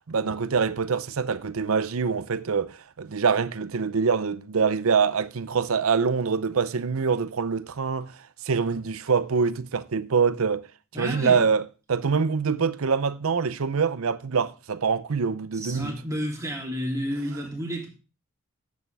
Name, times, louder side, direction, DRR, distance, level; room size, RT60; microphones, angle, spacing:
voice 1, 0.1-10.7 11.0-11.6 11.9-16.0, right 5 dB, 70° right, 0.6 m, -25 dB
voice 2, 10.9-11.4 15.5-17.9, equal, 15° right, 3.0 m, -31 dB
11.0 x 8.3 x 3.4 m
head